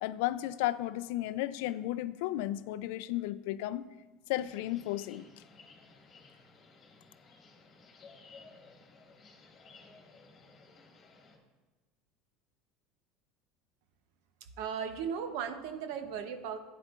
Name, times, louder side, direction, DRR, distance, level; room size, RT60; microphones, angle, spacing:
voice 1, 0.0-3.9 4.3-5.3, left 15 dB, 75° left, 15 dB, 0.3 m, -34 dB
sound 1, 4.3-11.4, left 4 dB, 30° left, 1.7 m, -57 dB
voice 2, 14.4-16.6, right 7 dB, 70° right, 9 dB, 0.8 m, -37 dB
11.5 x 9.2 x 2.4 m, 1.2 s
supercardioid pair, 130°, 0 cm